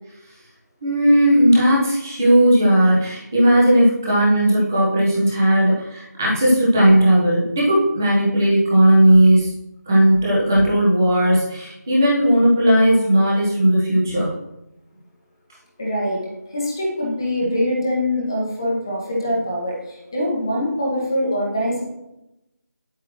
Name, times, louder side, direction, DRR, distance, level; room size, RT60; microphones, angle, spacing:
voice 1, 0.8-9.5 9.9-14.3, right 1 dB, 10° right, -6 dB, 1.2 m, -16 dB
voice 2, 15.8-16.2 16.5-21.8, left 1 dB, 15° left, -4 dB, 1.3 m, -23 dB
9.3 x 8.2 x 3.1 m, 0.92 s
figure-of-eight pair, 175°, 10 cm